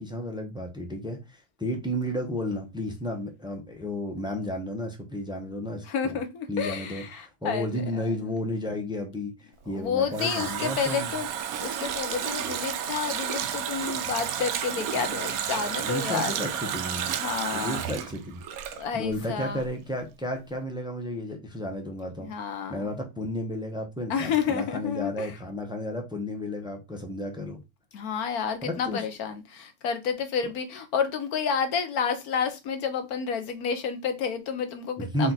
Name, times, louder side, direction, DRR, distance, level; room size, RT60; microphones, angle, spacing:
voice 1, 0.0-6.2 6.5-11.1 15.8-17.2 17.5-18.4 18.9-22.3 22.7-27.6 28.6-29.0 35.0-35.3, left 1 dB, 5° right, 0.7 m, -32 dB
voice 2, 5.9-8.1 9.7-16.3 17.2-17.8 18.7-19.6 22.2-22.8 24.1-25.3 27.9-35.3, left 6 dB, 85° left, 1.4 m, -30 dB
Water tap faucet, 9.7-19.3 19.6-19.7, right 9 dB, 75° right, 1.0 m, -32 dB
4.5 x 2.9 x 4.0 m
omnidirectional pair, 1.5 m